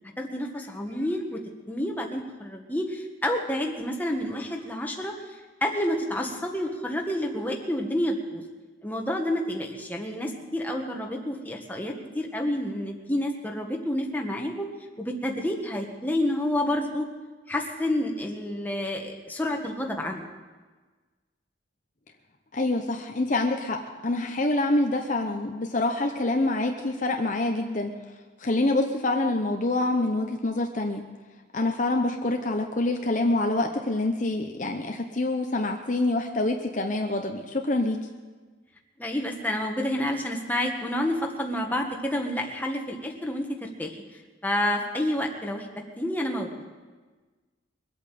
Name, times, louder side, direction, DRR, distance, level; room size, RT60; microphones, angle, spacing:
voice 1, 0.2-1.4 1.7-8.4 8.8-14.7 15.0-17.1 17.5-20.2 39.0-45.7 46.0-46.5, left 1 dB, 10° left, 1 dB, 1.5 m, -29 dB
voice 2, 22.5-27.9 28.4-31.0 31.5-38.0, left 2 dB, 40° left, 3 dB, 0.9 m, -26 dB
22.5 x 8.5 x 7.6 m, 1.3 s
head